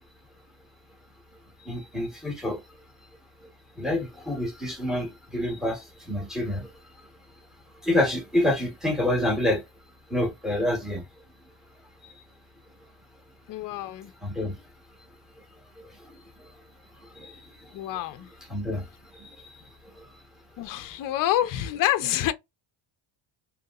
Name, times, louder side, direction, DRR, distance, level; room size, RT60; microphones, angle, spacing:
voice 1, 1.6-2.6 3.8-6.7 7.8-9.6 10.1-11.0 14.2-14.6 17.2-17.3 18.5-18.9 19.1-19.3, left 1 dB, ahead, 0.9 m, -27 dB
voice 2, 13.5-14.1 17.7-18.3 20.6-22.3, left 13 dB, 45° left, 0.5 m, -27 dB
2.9 x 2.9 x 2.3 m
cardioid pair, 175°, 49 cm